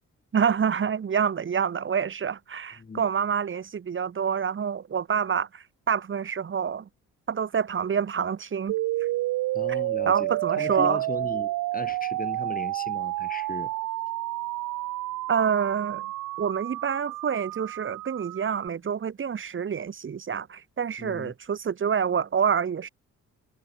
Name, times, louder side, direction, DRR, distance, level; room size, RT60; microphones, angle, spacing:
voice 1, 0.3-6.9 7.3-8.7 10.1-11.0 15.3-16.0 16.4-22.9, right 7 dB, 40° right, 2.0 m, -27 dB
sound 1, 8.7-18.7, right 17 dB, 80° right, 0.7 m, -30 dB
voice 2, 9.5-13.7 21.0-21.3, left 4 dB, 30° left, 2.7 m, -37 dB
cardioid pair, 90°, 30 cm